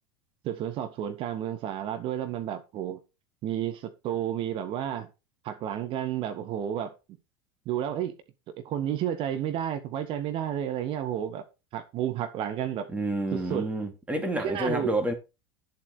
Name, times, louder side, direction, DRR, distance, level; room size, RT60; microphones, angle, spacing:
voice 1, 0.4-3.0 3.4-5.1 5.4-6.9 7.6-8.1 8.6-11.4 11.7-12.9 13.3-13.7 14.4-14.9, right 10 dB, 45° right, 1.6 m, -31 dB
voice 2, 12.9-15.1, right 1 dB, 10° right, 3.4 m, -29 dB
10.5 x 7.5 x 5.0 m
figure-of-eight pair, 75°, 13 cm